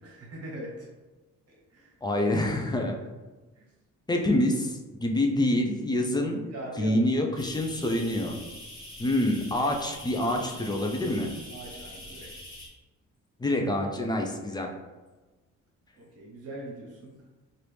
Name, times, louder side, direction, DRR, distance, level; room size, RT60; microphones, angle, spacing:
voice 1, 0.0-0.9 1.5-1.9 3.5-3.6 6.1-6.2 6.5-7.1 11.5-12.3 15.9-17.1, right 1 dB, 55° right, -3 dB, 1.3 m, -41 dB
voice 2, 2.0-3.0 4.1-6.4 6.8-8.4 9.0-11.3 13.4-14.7, left 1 dB, 15° left, 2 dB, 0.5 m, -26 dB
sound 1, 7.3-12.7, left 1 dB, 40° left, 1.3 m, -44 dB
2.9 x 2.6 x 3.4 m, 1.2 s
cardioid pair, 90°, 30 cm